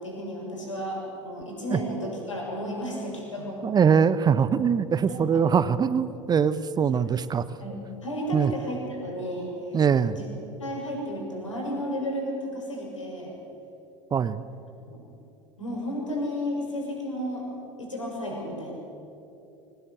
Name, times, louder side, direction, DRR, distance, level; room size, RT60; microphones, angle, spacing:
voice 1, 0.0-3.6 5.1-5.4 6.9-7.0 7.6-9.8 10.1-10.3 10.6-13.3 14.9-15.0 15.6-17.5 17.8-18.7, equal, 80° left, -1 dB, 6.5 m, -33 dB
voice 2, 3.6-7.4 8.3-8.5 9.7-10.2 14.1-14.4, right 7 dB, 25° right, 15 dB, 0.8 m, -22 dB
23.5 x 18.0 x 8.2 m, 2.8 s
figure-of-eight pair, 75°, 16 cm